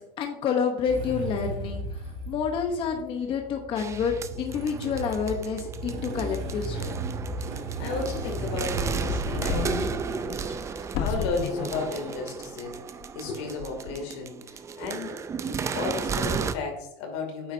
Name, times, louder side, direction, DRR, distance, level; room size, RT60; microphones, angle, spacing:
voice 1, 0.0-6.9, left 6 dB, 40° left, 3 dB, 1.0 m, -29 dB
Motorcycle / Engine starting, 0.9-10.0, right 2 dB, 60° right, 1.7 m, -35 dB
sound 1, 3.8-16.5, right 6 dB, 20° right, 0.4 m, -34 dB
voice 2, 7.8-12.7 13.1-15.2 15.5-17.5, left 4 dB, 85° left, 3 dB, 2.6 m, -34 dB
sound 2, 8.1-8.3 8.9-9.9 10.3-10.4 10.9-11.8 12.2-12.3 13.0-13.3 13.6-13.9, left 5 dB, 70° left, 0.9 m, -31 dB
9.0 x 7.2 x 2.7 m, 0.82 s
cardioid pair, 150°, 14 cm